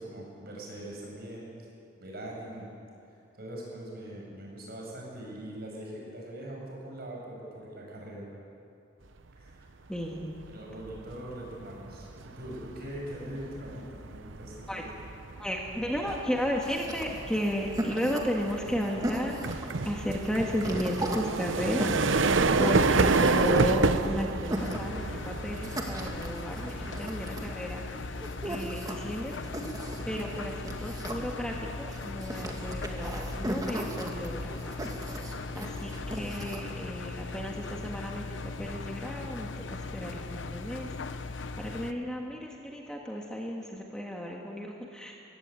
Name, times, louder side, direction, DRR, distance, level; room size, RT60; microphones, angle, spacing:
voice 1, 0.0-1.5 2.0-2.7 3.4-8.3 9.4-9.6 10.5-12.1 12.4-14.9 17.6-17.7 29.8-30.4 35.2-35.8 41.9-42.2, right 1 dB, 55° right, -2 dB, 6.9 m, -42 dB
voice 2, 9.9-10.4 14.7-14.8 15.4-29.4 30.1-34.7 35.0-35.2 35.5-40.9 41.2-45.1, equal, 5° left, -1 dB, 1.6 m, -34 dB
sound 1, 10.1-10.4 10.8-27.5, right 3 dB, 90° right, 0.9 m, -29 dB
sound 2, 16.6-36.6, right 1 dB, 20° right, 2.0 m, -38 dB
Engine, 24.5-41.9, left 3 dB, 75° left, 0.8 m, -39 dB
22.0 x 16.0 x 8.5 m, 2.6 s
head